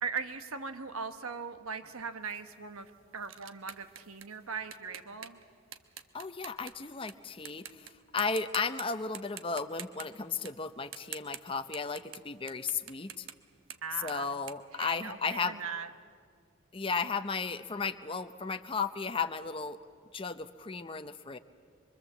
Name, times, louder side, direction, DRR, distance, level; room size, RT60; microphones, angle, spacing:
voice 1, 0.0-5.4 13.8-14.3 14.7-15.9, right 5 dB, 85° right, 8 dB, 1.2 m, -39 dB
sound 1, 2.2-7.1 7.5-7.9 8.2-8.8 9.1-15.5, right 10 dB, 65° right, 1.1 m, -47 dB
voice 2, 6.1-13.3 14.0-15.6 16.7-19.8 20.1-21.4, left 5 dB, 25° left, 9 dB, 0.6 m, -34 dB
25.5 x 23.5 x 7.5 m, 2.1 s
head